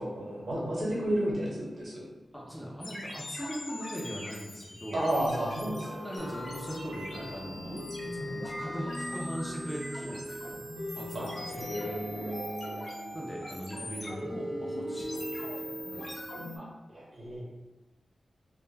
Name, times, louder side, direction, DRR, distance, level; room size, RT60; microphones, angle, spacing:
voice 1, 0.0-2.0 4.9-6.0 11.1-11.3 11.5-12.8 16.5-17.4, right 1 dB, 65° right, -6 dB, 1.0 m, -32 dB
voice 2, 2.3-5.0 6.0-10.6 10.9-12.0 13.1-16.3, equal, 5° left, -4 dB, 0.4 m, -40 dB
sound 1, 2.8-16.6, equal, 55° left, 0.7 m, -39 dB
Acoustic guitar, 6.2-10.6, left 2 dB, 80° left, 0.4 m, -48 dB
2.2 x 2.1 x 3.2 m, 1.1 s
wide cardioid pair, 120°, 0 cm